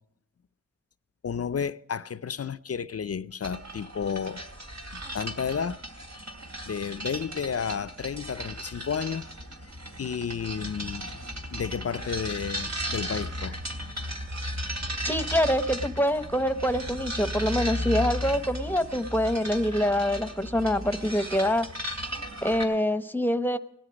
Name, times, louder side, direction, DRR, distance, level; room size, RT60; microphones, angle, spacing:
voice 1, 1.2-4.4 4.9-5.8 6.7-9.3 10.0-11.1 11.5-13.6, left 7 dB, 55° left, 0.5 m, -32 dB
sound 1, 3.4-22.6, equal, 65° right, 2.8 m, -35 dB
voice 2, 15.0-21.7 22.4-23.6, equal, 5° left, 0.8 m, -25 dB
18.5 x 13.0 x 5.1 m
wide cardioid pair, 85°, 29 cm